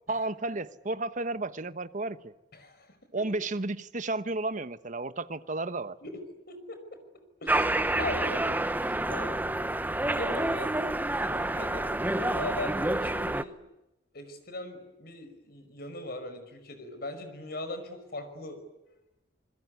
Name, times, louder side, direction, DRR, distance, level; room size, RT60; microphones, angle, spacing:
voice 1, 0.1-2.3 3.1-5.9, right 2 dB, 45° right, 1.1 m, -32 dB
voice 2, 2.5-3.3 6.0-6.8 7.4-9.4 10.1-10.9 11.2-13.6 14.1-18.6 18.9-19.0, left 1 dB, 60° left, 5.4 m, -40 dB
sound 1, 7.5-13.4, right 1 dB, 10° right, 0.9 m, -28 dB
27.5 x 21.5 x 9.7 m
head